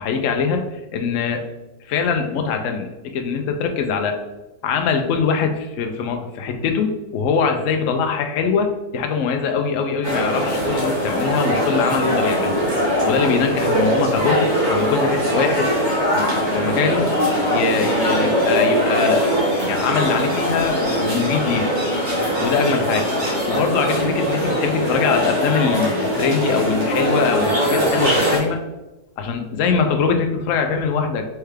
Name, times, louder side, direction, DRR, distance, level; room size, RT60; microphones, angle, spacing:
voice 1, 0.0-1.4 1.9-2.9 3.1-4.2 4.6-12.5 13.1-15.7 16.1-17.1 17.5-19.3 19.6-22.0 22.4-23.1 23.5-28.6 29.2-31.3, left 5 dB, 70° left, 5 dB, 0.9 m, -22 dB
sound 1, 10.0-28.4, equal, 35° right, 1.3 m, -21 dB
4.6 x 3.3 x 3.3 m, 1.1 s
omnidirectional pair, 1.6 m